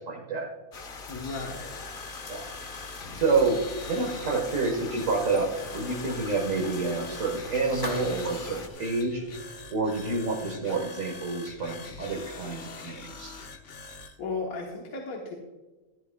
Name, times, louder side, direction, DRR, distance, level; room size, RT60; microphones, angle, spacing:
voice 1, 0.1-0.5 2.3-2.5 3.1-3.6 3.9-9.2 9.7-13.4, right 3 dB, 65° right, -1 dB, 1.8 m, -28 dB
sound 1, 0.7-8.7, left 4 dB, 45° left, 1.0 m, -42 dB
voice 2, 1.1-1.8 14.2-15.4, left 4 dB, 80° left, 0 dB, 1.6 m, -35 dB
sound 2, 1.1-14.2, left 3 dB, 60° left, 1.3 m, -44 dB
sound 3, 3.8-9.9 10.2-10.3 11.7-11.8, left 1 dB, 20° left, 0.9 m, -45 dB
15.0 x 11.0 x 2.3 m, 1.2 s
omnidirectional pair, 1.5 m